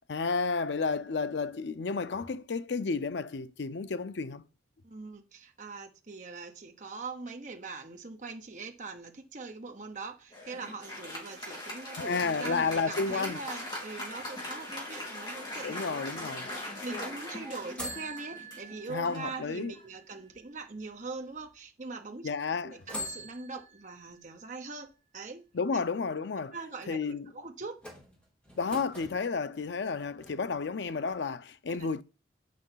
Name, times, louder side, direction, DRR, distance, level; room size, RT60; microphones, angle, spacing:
voice 1, 0.1-4.4 12.0-13.4 15.6-16.5 18.9-19.7 22.2-22.8 25.5-26.6 26.9-27.3 28.6-32.0, left 4 dB, 80° left, 0.5 m, -31 dB
voice 2, 4.8-22.3 22.6-25.4 25.7-25.8 26.5-27.8 31.7-31.9, right 3 dB, 45° right, 0.9 m, -42 dB
Applause, 10.3-20.1, left 1 dB, 25° left, 3.4 m, -41 dB
sound 1, 12.4-14.2 17.8-20.9 21.4-21.5 22.8-24.6 27.8-29.2 29.9-30.8 31.1-31.2, equal, 5° left, 3.6 m, -45 dB
7.6 x 5.6 x 5.7 m
head